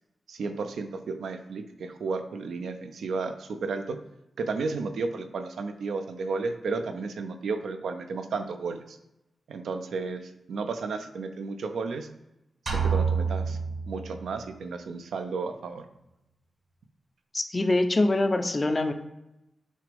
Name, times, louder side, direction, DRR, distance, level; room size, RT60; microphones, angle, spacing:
voice 1, 0.3-4.0 4.4-9.0 9.5-12.1 12.7-13.6 13.9-15.8, right 4 dB, 85° right, 7 dB, 0.4 m, -33 dB
sound 1, 12.7-14.5, right 5 dB, 65° right, 1.0 m, -28 dB
voice 2, 17.3-18.9, left 2 dB, 35° left, 6 dB, 0.5 m, -24 dB
6.3 x 2.5 x 3.4 m, 0.88 s
cardioid pair, 55°, 0 cm